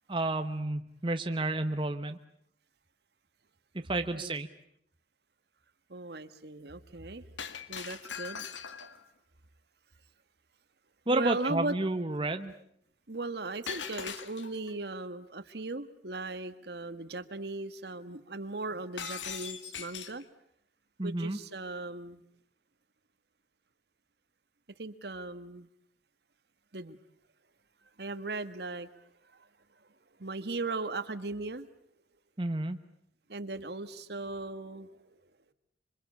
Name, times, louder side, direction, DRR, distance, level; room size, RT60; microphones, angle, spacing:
voice 1, 0.1-2.2 3.9-4.5 11.1-12.5 21.0-21.4 32.4-32.8, right 2 dB, 30° right, 7 dB, 1.0 m, -31 dB
voice 2, 5.9-7.2 7.7-8.5 8.8-8.9 11.1-11.8 13.1-20.2 21.0-22.2 24.8-25.7 26.7-27.0 28.0-29.0 29.3-29.5 30.2-31.7 33.3-35.2, right 2 dB, 60° right, 11 dB, 1.4 m, -38 dB
Shatter, 7.4-9.0 13.7-14.7 19.0-20.2, left 7 dB, 85° left, 1.9 m, -40 dB
26.5 x 25.0 x 8.4 m, 0.73 s
head